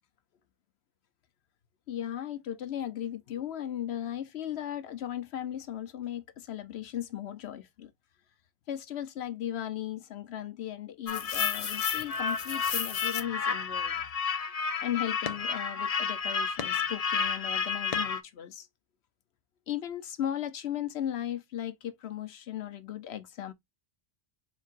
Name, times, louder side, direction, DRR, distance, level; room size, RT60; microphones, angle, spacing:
voice 1, 1.9-7.9 8.7-14.1 14.8-18.7 19.7-23.5, left 11 dB, 85° left, 1.0 m, -36 dB
sound 1, 11.1-18.2, left 6 dB, 45° left, 0.5 m, -31 dB
4.5 x 4.4 x 2.4 m
omnidirectional pair, 1.1 m